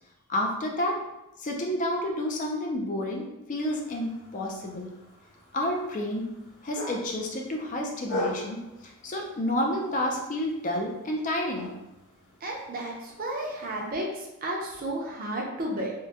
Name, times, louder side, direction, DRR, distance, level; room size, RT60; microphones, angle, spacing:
voice 1, 0.3-1.0 1.4-4.9 5.5-6.3 6.6-8.6 8.8-11.7, left 1 dB, 35° left, 0 dB, 0.4 m, -30 dB
sound 1, 3.5-14.0, left 1 dB, 50° left, 0.9 m, -41 dB
voice 2, 12.4-15.9, right 1 dB, 40° right, -1 dB, 0.6 m, -32 dB
3.5 x 2.1 x 2.7 m, 0.93 s
head